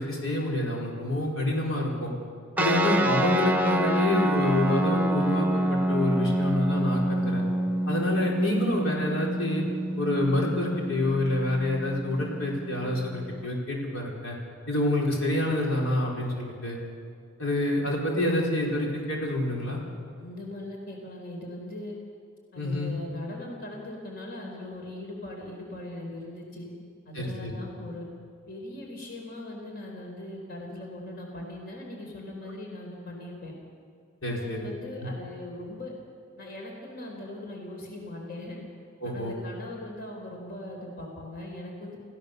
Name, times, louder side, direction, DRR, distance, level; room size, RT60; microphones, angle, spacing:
voice 1, 0.0-2.1 2.6-7.4 7.9-9.6 10.0-14.4 14.7-16.8 17.4-19.8 22.6-22.9 27.1-27.5 34.2-34.7 39.0-39.3, left 1 dB, 75° left, -2 dB, 4.6 m, -27 dB
sound 1, 2.6-13.5, right 1 dB, 10° right, 1.0 m, -27 dB
voice 2, 20.2-21.9 22.5-26.7 27.1-28.1 28.5-33.5 34.3-35.9 36.4-38.6 39.0-42.0, left 1 dB, 50° left, 0 dB, 4.1 m, -40 dB
28.5 x 15.5 x 6.8 m, 2.3 s
head